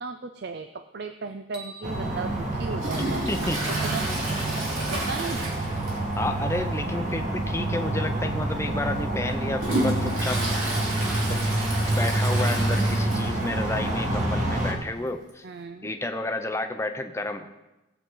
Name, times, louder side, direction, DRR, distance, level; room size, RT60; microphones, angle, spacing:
voice 1, 0.0-3.2 3.8-4.1 4.9-5.4 15.4-15.9, right 4 dB, 55° right, 8 dB, 0.5 m, -36 dB
sound 1, 1.5-3.8, right 2 dB, 5° right, 1.3 m, -48 dB
sound 2, 1.8-14.7, right 1 dB, 40° right, 1.8 m, -27 dB
Toilet flush, 2.8-6.2 6.5-6.6 7.0-7.1 8.0-8.1 8.6-13.5 13.9-14.0 14.1-14.2 15.3-15.4, right 1 dB, 80° right, 3.6 m, -31 dB
voice 2, 3.3-3.6 6.2-10.4 11.3-11.4 12.0-15.5 15.8-17.5, left 2 dB, 15° left, 6 dB, 0.7 m, -31 dB
17.5 x 8.1 x 3.9 m, 1.0 s
head